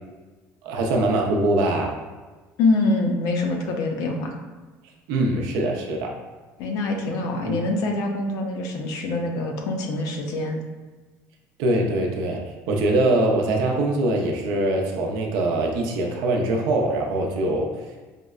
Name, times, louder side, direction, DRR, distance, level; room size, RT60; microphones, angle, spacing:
voice 1, 0.6-2.0 5.1-6.1 7.5-7.6 11.6-12.4 12.7-17.7, right 2 dB, 85° right, 1 dB, 0.5 m, -23 dB
voice 2, 2.6-4.3 6.6-10.6, left 2 dB, 65° left, 3 dB, 0.5 m, -25 dB
4.9 x 2.1 x 2.3 m, 1.3 s
cardioid pair, 150°, 7 cm